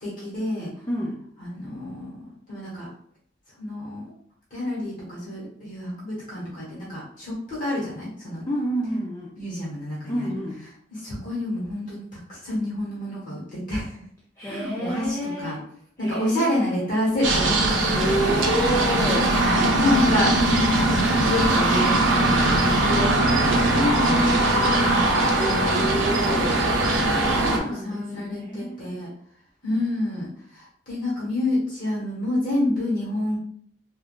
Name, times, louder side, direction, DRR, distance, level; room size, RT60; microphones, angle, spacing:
voice 1, 0.0-0.7 1.4-2.1 2.5-2.9 3.6-4.0 4.5-8.5 9.4-10.3 10.9-14.0 14.4-15.2 15.4-15.6 16.0-18.0 19.3-20.5 20.7-23.8 24.0-24.2 24.7-25.1 27.7-29.1 29.6-30.3 30.5-33.4, left 1 dB, 45° left, -7 dB, 1.3 m, -28 dB
voice 2, 0.9-1.2 8.5-9.3 10.1-10.7 14.4-15.6 16.0-16.9 18.0-19.4 23.7-24.9 25.4-26.6 27.0-29.0, equal, 15° left, -5 dB, 0.4 m, -29 dB
sound 1, 17.2-27.6, right 2 dB, 80° right, 0.6 m, -21 dB
3.5 x 2.4 x 2.3 m, 0.63 s
head